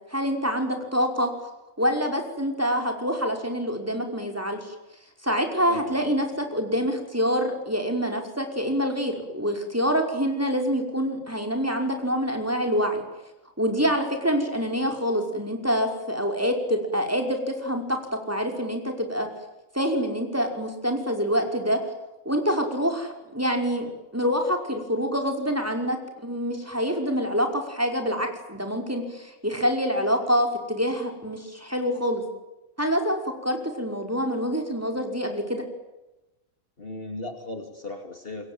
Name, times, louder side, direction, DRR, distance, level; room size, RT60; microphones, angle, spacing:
voice 1, 0.1-1.3 1.8-4.7 5.2-13.0 13.6-18.0 18.3-19.3 19.7-21.8 22.3-32.2 32.8-35.6, equal, 10° right, 3 dB, 5.4 m, -26 dB
voice 2, 5.7-6.1 36.8-38.5, left 2 dB, 40° left, 5 dB, 2.8 m, -37 dB
28.5 x 22.5 x 9.3 m, 0.99 s
omnidirectional pair, 1.5 m